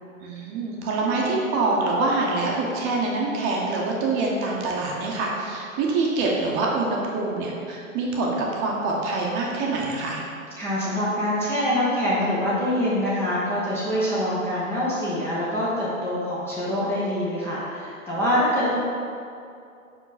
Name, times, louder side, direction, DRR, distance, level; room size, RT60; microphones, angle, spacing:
voice 1, 0.2-10.2, right 3 dB, 25° right, -2 dB, 1.0 m, -25 dB
voice 2, 10.6-18.8, equal, 5° left, -10 dB, 0.8 m, -25 dB
5.6 x 5.0 x 4.1 m, 2.5 s
hypercardioid pair, 130°, 41 cm